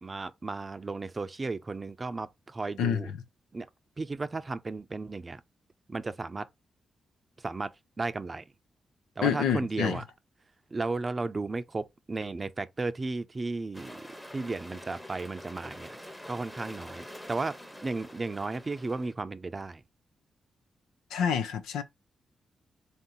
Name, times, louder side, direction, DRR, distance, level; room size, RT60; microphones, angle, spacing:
voice 1, 0.0-3.1 3.5-3.7 4.0-5.4 5.9-6.5 7.4-7.7 8.0-8.4 9.2-10.0 10.7-14.0 14.3-15.9 16.3-17.5 17.8-19.8, right 3 dB, 40° right, 0.5 m, -34 dB
voice 2, 9.2-10.0 21.1-21.8, left 8 dB, 90° left, 0.6 m, -27 dB
sound 1, 13.7-19.1, equal, 10° left, 1.0 m, -46 dB
3.6 x 2.7 x 3.8 m
supercardioid pair, 50°, 0 cm